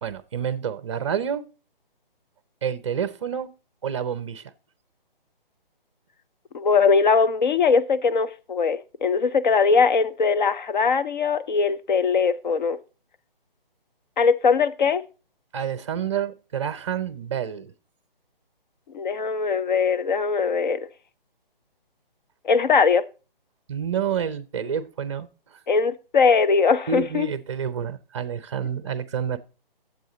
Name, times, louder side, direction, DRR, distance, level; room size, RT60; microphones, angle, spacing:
voice 1, 0.0-1.4 2.6-3.5 3.8-4.4 15.5-17.7 23.7-25.3 26.9-29.4, right 8 dB, 30° right, 0.5 m, -28 dB
voice 2, 6.5-12.8 14.2-15.0 18.9-20.8 22.4-23.0 25.7-27.3, left 5 dB, 55° left, 0.7 m, -21 dB
9.2 x 7.4 x 3.8 m
figure-of-eight pair, 155°, 29 cm